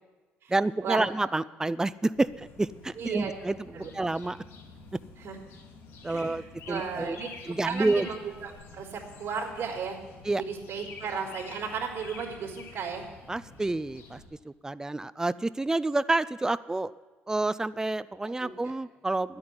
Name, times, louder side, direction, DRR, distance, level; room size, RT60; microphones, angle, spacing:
voice 1, 0.5-4.4 6.0-7.2 7.5-8.1 10.2-10.4 13.3-14.2 14.4-16.9 17.3-19.4, right 2 dB, 15° right, 17 dB, 0.4 m, -29 dB
sound 1, 2.1-14.3, left 4 dB, 80° left, 2.7 m, -48 dB
voice 2, 3.0-3.3 3.7-3.9 5.2-5.4 6.1-10.0 10.4-13.0 18.3-18.7, right 6 dB, 70° right, -9 dB, 3.3 m, -35 dB
10.0 x 8.8 x 9.7 m, 1.3 s
supercardioid pair, 70°, 5 cm